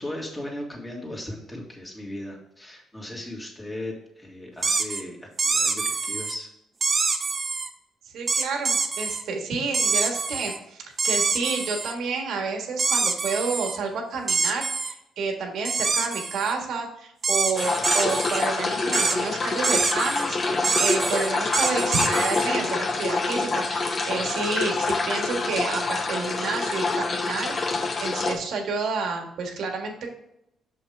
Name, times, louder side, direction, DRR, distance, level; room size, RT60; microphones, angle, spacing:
voice 1, 0.0-6.5, left 1 dB, 15° left, -1 dB, 2.4 m, -37 dB
sound 1, 4.6-5.0 5.4-6.3 6.8-7.7 8.3-9.2 9.7-10.6 11.0-11.9 12.8-13.8 14.3-14.9 15.6-16.5 17.2-18.5 18.9-19.2 19.6-20.3 20.6-22.5, right 4 dB, 40° right, 0.9 m, -25 dB
voice 2, 8.1-30.1, right 4 dB, 75° right, 2 dB, 1.7 m, -30 dB
sound 2, 17.6-28.4, left 3 dB, 40° left, 1.0 m, -26 dB
6.6 x 5.8 x 3.5 m, 0.79 s
cardioid pair, 90°, 0 cm